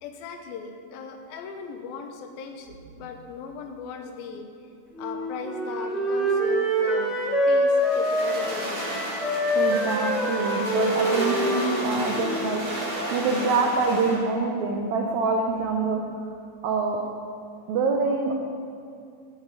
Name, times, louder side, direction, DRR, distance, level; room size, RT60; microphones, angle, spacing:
voice 1, 0.0-4.5 5.0-7.2 7.5-8.9 9.7-9.8, left 5 dB, 80° left, 5 dB, 2.6 m, -38 dB
Wind instrument woodwind instrument, 5.0-12.6, equal, ahead, 1.4 m, -25 dB
sound 1, 7.7-14.2, right 1 dB, 30° right, 3.1 m, -32 dB
voice 2, 9.5-12.6 13.1-16.0 16.6-17.0 17.7-18.3, right 4 dB, 85° right, 2 dB, 1.6 m, -25 dB
17.0 x 8.3 x 3.8 m, 2.5 s
omnidirectional pair, 4.3 m